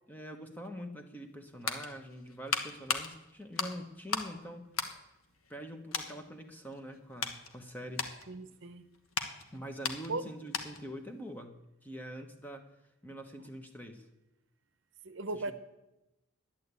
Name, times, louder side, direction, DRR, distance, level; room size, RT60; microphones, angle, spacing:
voice 1, 0.1-4.7 5.5-8.1 9.5-12.7 13.0-14.1 15.3-15.5, equal, 10° left, 5 dB, 1.1 m, -44 dB
sound 1, 1.2-4.4 4.7-5.6 5.9-6.2 6.7-10.9 11.2-11.4, left 5 dB, 80° left, 1.3 m, -37 dB
voice 2, 8.3-8.9 10.1-10.2 15.0-15.5, right 3 dB, 60° right, 10 dB, 0.8 m, -37 dB
11.5 x 10.0 x 8.2 m, 0.95 s
head